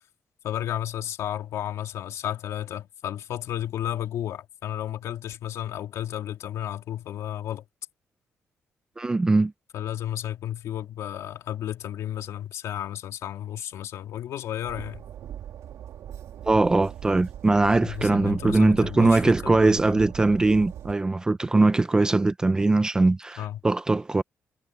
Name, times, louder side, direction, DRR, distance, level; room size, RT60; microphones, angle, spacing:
voice 1, 0.4-7.6 9.7-15.0 17.8-20.0 23.4-23.6, left 11 dB, 80° left, 2.4 m, -33 dB
voice 2, 9.0-9.5 16.5-24.2, right 2 dB, 15° right, 0.5 m, -21 dB
Train, 14.6-21.0, right 10 dB, 80° right, 2.0 m, -40 dB
cardioid pair, 155°, 5 cm